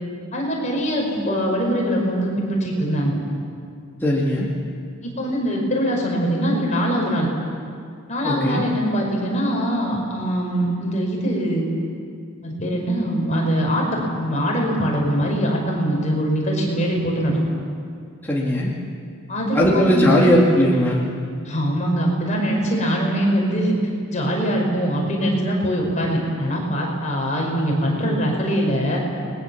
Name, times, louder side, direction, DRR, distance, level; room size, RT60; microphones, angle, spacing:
voice 1, 0.3-3.2 5.0-7.3 8.1-11.7 12.4-17.4 19.3-20.3 21.5-23.8 24.1-29.0, equal, 35° left, -1 dB, 5.5 m, -22 dB
voice 2, 4.0-4.5 8.2-8.6 18.2-18.7 19.5-21.0, equal, 10° left, -5 dB, 2.5 m, -18 dB
30.0 x 21.5 x 7.4 m, 2.3 s
head